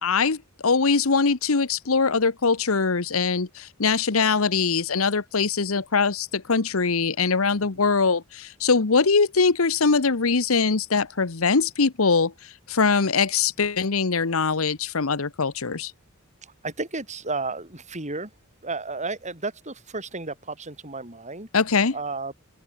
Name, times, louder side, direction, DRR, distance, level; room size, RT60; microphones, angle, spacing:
voice 1, 0.0-15.9 21.5-21.9, left 4 dB, 80° left, 1.0 m, -22 dB
voice 2, 16.4-18.3 18.6-21.5 21.9-22.3, right 3 dB, 35° right, 6.2 m, -32 dB
open air
head